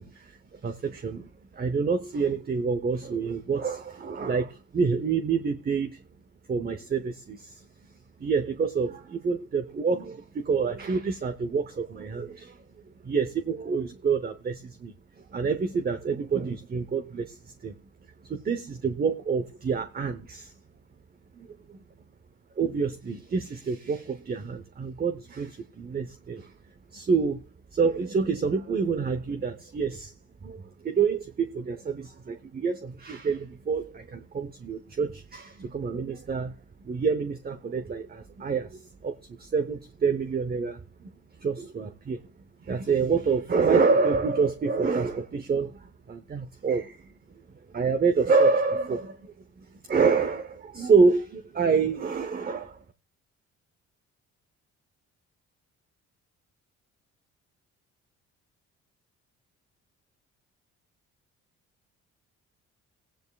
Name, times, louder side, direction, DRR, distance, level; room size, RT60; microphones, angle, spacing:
voice 1, 0.0-6.0 6.5-7.7 8.2-12.6 13.0-17.7 18.2-20.5 21.4-21.8 22.6-26.5 26.9-27.4 27.7-30.1 30.4-36.6 36.8-41.1 41.4-42.2 42.6-47.1 47.7-52.8, right 5 dB, 30° right, 0.9 m, -27 dB
16.5 x 10.5 x 2.4 m
cardioid pair, 90°, 30 cm